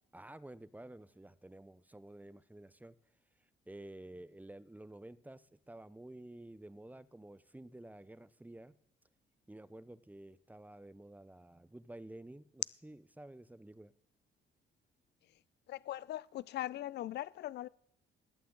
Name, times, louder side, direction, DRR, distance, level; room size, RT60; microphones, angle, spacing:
voice 1, 0.1-2.9 3.7-8.7 9.5-13.9, right 1 dB, 10° right, 0.7 m, -51 dB
voice 2, 15.7-17.7, left 14 dB, 60° left, 0.4 m, -40 dB
19.0 x 8.4 x 3.8 m
cardioid pair, 90°, 20 cm